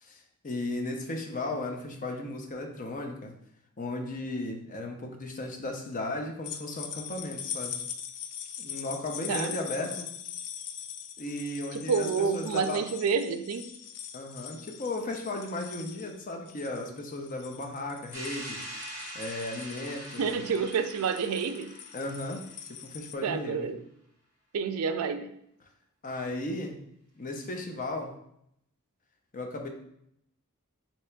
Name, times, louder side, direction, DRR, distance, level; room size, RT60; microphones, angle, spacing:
voice 1, 0.0-3.3 3.8-7.8 8.6-10.1 11.2-12.8 14.1-18.6 19.1-20.4 21.9-23.7 26.0-26.8 27.2-28.1 29.3-29.7, left 2 dB, 40° left, 2 dB, 0.6 m, -35 dB
sound 1, 6.4-23.1, left 9 dB, 75° left, 0.4 m, -42 dB
voice 2, 11.7-13.6 20.2-21.7 23.2-23.8 24.5-25.3, right 5 dB, 75° right, 10 dB, 0.4 m, -29 dB
sound 2, 18.1-22.9, equal, 15° right, 1.5 m, -43 dB
3.3 x 2.9 x 4.4 m, 0.74 s
head